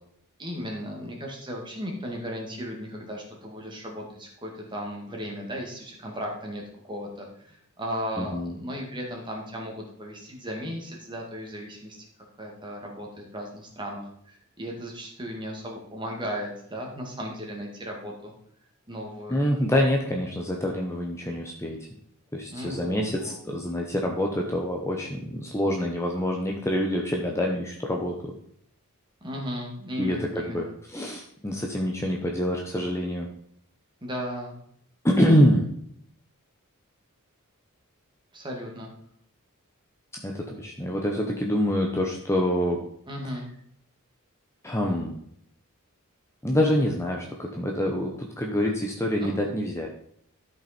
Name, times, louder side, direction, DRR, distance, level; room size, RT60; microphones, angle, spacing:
voice 1, 0.4-12.0 12.4-18.3 18.9-19.4 22.5-23.4 29.2-30.7 34.0-34.6 38.3-38.9 43.1-43.5 46.6-46.8 49.2-49.5, equal, 20° right, 0 dB, 2.1 m, -36 dB
voice 2, 8.2-8.6 19.3-21.8 22.3-28.1 30.0-33.3 35.0-35.7 40.2-42.8 44.6-45.2 46.4-49.9, equal, 10° left, 0 dB, 0.9 m, -26 dB
12.5 x 5.4 x 4.4 m, 0.68 s
head